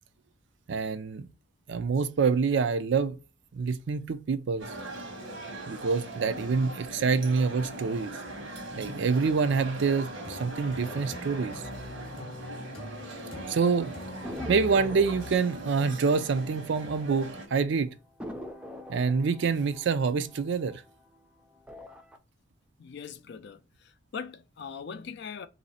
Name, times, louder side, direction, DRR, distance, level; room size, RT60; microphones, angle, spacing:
voice 1, 0.7-1.3 1.7-3.2 3.5-4.7 5.7-8.1 8.8-11.6 13.5-13.9 14.5-17.9 18.9-20.8, right 5 dB, 65° right, 0.4 m, -26 dB
sound 1, 4.6-17.5, right 1 dB, 85° right, 1.2 m, -41 dB
sound 2, 9.5-15.4, left 1 dB, 30° left, 0.7 m, -44 dB
sound 3, 14.2-17.3 17.6-17.7 18.2-21.1 21.6-22.2, equal, 5° right, 0.4 m, -44 dB
voice 2, 22.8-23.6 24.1-25.5, left 6 dB, 60° left, 0.4 m, -40 dB
3.2 x 2.7 x 4.1 m
head